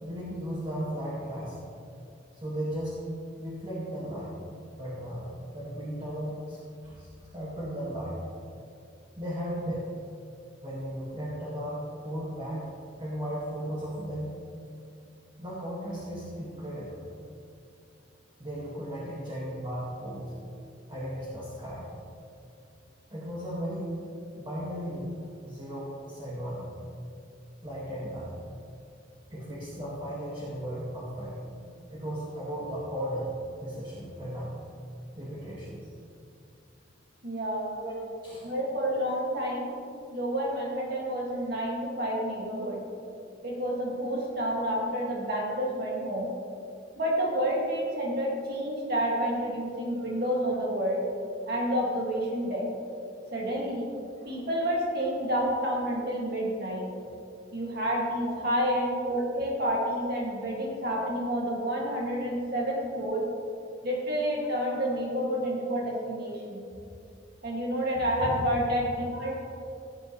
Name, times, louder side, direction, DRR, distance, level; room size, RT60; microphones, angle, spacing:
voice 1, 0.0-1.6 2.3-3.0 3.4-4.3 4.7-5.3 5.5-8.2 9.2-9.9 10.6-12.7 13.0-14.4 15.4-17.0 18.4-20.3 20.9-21.9 23.1-23.9 24.3-25.2 25.4-26.7 27.6-28.3 29.3-31.6 31.9-34.6 35.1-35.8 37.7-38.5 39.1-39.2 50.1-50.2 54.8-54.9 58.2-58.4 68.1-68.3, equal, 25° right, -7 dB, 1.9 m, -36 dB
voice 2, 37.2-37.7 38.4-39.7 40.1-42.8 43.4-46.3 47.0-51.0 51.5-52.6 53.3-53.9 54.2-56.9 57.5-63.2 63.8-66.6 67.4-69.4, equal, 55° right, -4 dB, 2.3 m, -29 dB
17.5 x 8.4 x 3.2 m, 2.6 s
head